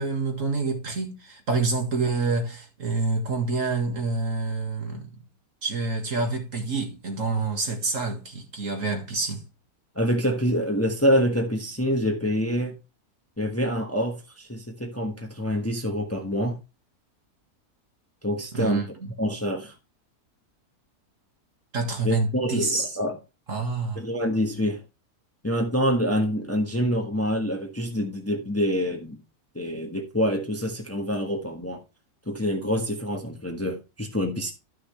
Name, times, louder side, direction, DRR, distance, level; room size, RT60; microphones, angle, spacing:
voice 1, 0.0-5.1 5.6-9.4 18.5-18.8 21.7-22.9 23.5-24.0, right 3 dB, 55° right, 2.2 m, -27 dB
voice 2, 9.9-12.7 13.4-16.6 18.2-18.8 19.2-19.7 22.0-23.2 23.9-24.8 25.4-29.2 29.5-31.8 32.3-34.5, equal, 10° left, 1.2 m, -26 dB
12.5 x 6.1 x 3.2 m
omnidirectional pair, 1.6 m